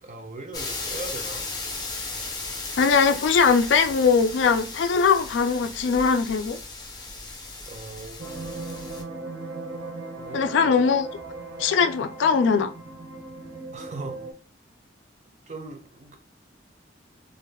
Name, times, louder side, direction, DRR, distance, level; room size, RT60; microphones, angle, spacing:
voice 1, 0.0-1.5 7.7-8.3 10.2-10.9 13.7-14.2 15.5-16.2, right 3 dB, 40° right, 0.5 m, -39 dB
sound 1, 0.5-9.0, left 3 dB, 20° left, 0.5 m, -36 dB
voice 2, 2.8-6.6 10.3-11.1 11.6-12.7, left 5 dB, 85° left, 0.4 m, -21 dB
sound 2, 8.2-14.3, right 2 dB, 85° right, 0.8 m, -38 dB
2.5 x 2.2 x 3.4 m
head